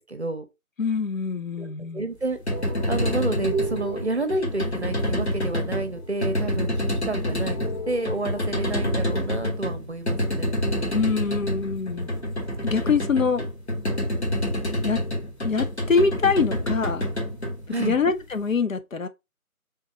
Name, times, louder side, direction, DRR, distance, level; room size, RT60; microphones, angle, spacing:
voice 1, 0.1-0.4 1.6-2.4 2.9-7.6 7.9-10.6 17.7-18.0, right 2 dB, 50° right, 0.7 m, -30 dB
voice 2, 0.8-2.0 10.9-12.1 12.6-13.5 14.8-15.0 15.4-17.1 17.8-19.1, left 5 dB, 65° left, 0.6 m, -24 dB
sound 1, 2.2-18.4, left 1 dB, 50° left, 1.3 m, -28 dB
sound 2, 2.5-8.6, right 3 dB, 30° left, 0.9 m, -36 dB
3.6 x 2.8 x 4.0 m
figure-of-eight pair, 165°, 43 cm